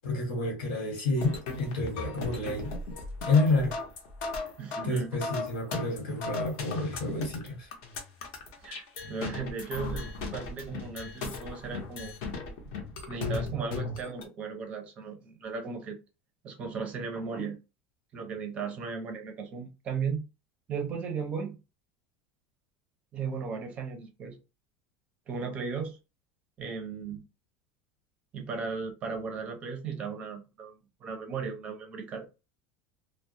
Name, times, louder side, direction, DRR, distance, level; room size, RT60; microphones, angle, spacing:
voice 1, 0.0-2.7 3.2-3.7 4.8-7.7, left 2 dB, 80° left, 1.2 m, -29 dB
sound 1, 1.2-14.2, left 3 dB, 55° left, 0.7 m, -36 dB
voice 2, 4.6-5.1 8.6-10.1 10.3-12.1 13.1-16.0 16.4-17.6 18.1-20.2 20.7-21.6 23.1-24.4 25.3-26.0 26.6-27.2 28.3-32.3, right 5 dB, 25° right, 0.5 m, -36 dB
2.3 x 2.0 x 2.7 m
cardioid pair, 175°, 5 cm